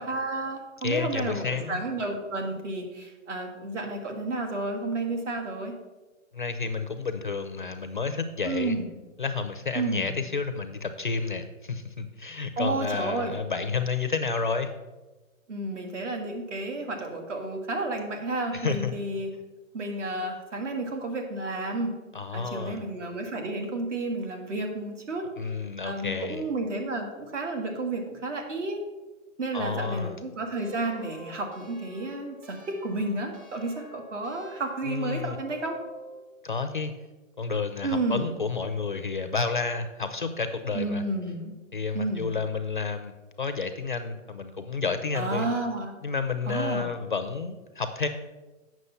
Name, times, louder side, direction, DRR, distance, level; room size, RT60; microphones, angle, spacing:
voice 1, 0.0-5.7 8.4-8.9 9.7-10.2 12.6-13.4 15.5-19.3 19.7-21.9 22.3-25.3 25.8-28.8 29.4-35.8 37.8-38.3 40.7-41.5 41.9-42.3 45.1-45.9 46.5-46.9, right 2 dB, 60° right, 4 dB, 1.8 m, -31 dB
voice 2, 0.8-1.8 6.3-8.8 9.2-14.7 18.5-18.9 22.1-22.8 25.4-26.4 29.5-30.2 34.9-35.4 36.4-36.9 37.4-41.0 41.7-43.1 43.4-45.5 46.0-48.1, left 4 dB, 40° left, 8 dB, 0.4 m, -30 dB
sound 1, 30.6-36.3, right 1 dB, 25° right, 1.0 m, -48 dB
8.2 x 6.1 x 5.5 m, 1.2 s
hypercardioid pair, 170°, 41 cm